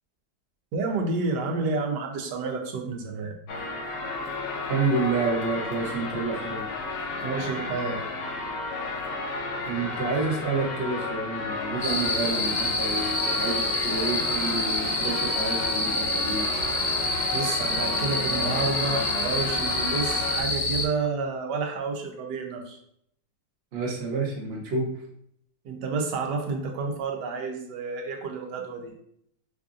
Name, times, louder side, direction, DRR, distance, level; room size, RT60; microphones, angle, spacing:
voice 1, 0.7-3.3 7.2-8.0 17.3-22.8 25.6-28.9, right 4 dB, 70° right, 3 dB, 1.3 m, -30 dB
sound 1, 3.5-20.4, left 3 dB, 80° left, 1.2 m, -33 dB
voice 2, 4.7-6.7 9.6-16.5 23.7-24.9, right 3 dB, 45° right, -1 dB, 0.8 m, -29 dB
sound 2, 11.8-20.9, left 2 dB, 30° left, 0.7 m, -27 dB
4.8 x 2.6 x 2.4 m, 0.69 s
omnidirectional pair, 2.0 m